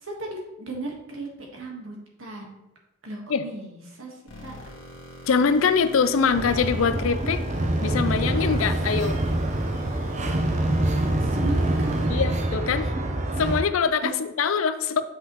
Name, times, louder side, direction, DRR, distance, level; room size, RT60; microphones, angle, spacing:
voice 1, 0.0-2.6 3.0-4.6 11.2-12.2 14.0-14.1, right 2 dB, 80° right, 0 dB, 1.5 m, -36 dB
sound 1, 4.3-12.1, equal, 70° left, 1.7 m, -41 dB
voice 2, 5.3-7.4 7.8-9.2 12.1-12.9 13.4-15.0, left 5 dB, 90° left, 12 dB, 0.5 m, -23 dB
sound 2, 6.3-13.6, right 1 dB, 35° right, 0.5 m, -25 dB
7.3 x 5.6 x 3.0 m, 0.96 s
head